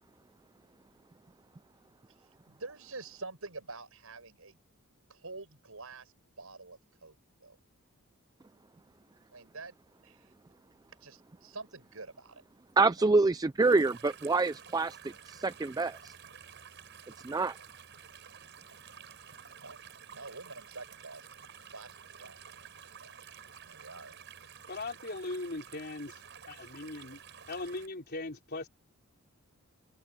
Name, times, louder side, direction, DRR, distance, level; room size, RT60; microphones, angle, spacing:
voice 1, 2.5-4.6 5.1-7.6 9.3-9.8 10.0-10.2 11.0-12.4 13.0-13.1 19.6-19.8 20.1-21.5 21.7-22.4 23.0-23.2 23.7-24.1, right 3 dB, 75° right, 6.4 m, -47 dB
voice 2, 12.8-15.0 15.3-16.1 17.2-17.6, right 3 dB, 15° right, 0.3 m, -26 dB
sound 1, 13.6-27.9, right 7 dB, 55° right, 6.3 m, -51 dB
voice 3, 24.7-26.2 26.5-27.2 27.5-28.7, left 2 dB, 45° left, 3.7 m, -39 dB
head